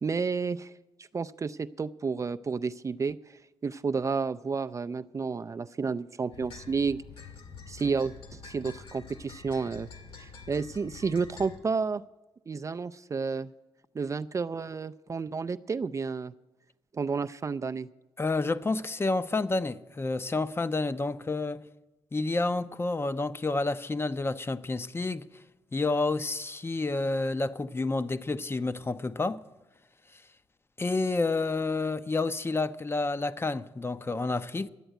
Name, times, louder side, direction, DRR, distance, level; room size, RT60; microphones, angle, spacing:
voice 1, 0.0-0.7 1.0-3.2 3.6-7.0 7.7-9.9 10.2-12.0 12.5-13.5 13.9-16.3 16.9-17.9, right 5 dB, 35° right, 0.4 m, -31 dB
sound 1, 6.3-11.6, left 4 dB, 70° left, 1.8 m, -47 dB
voice 2, 18.2-21.7 22.1-25.3 25.7-29.4 30.1-30.2 30.8-34.7, left 3 dB, 25° left, 0.6 m, -29 dB
11.5 x 7.9 x 9.1 m
cardioid pair, 65°, 10 cm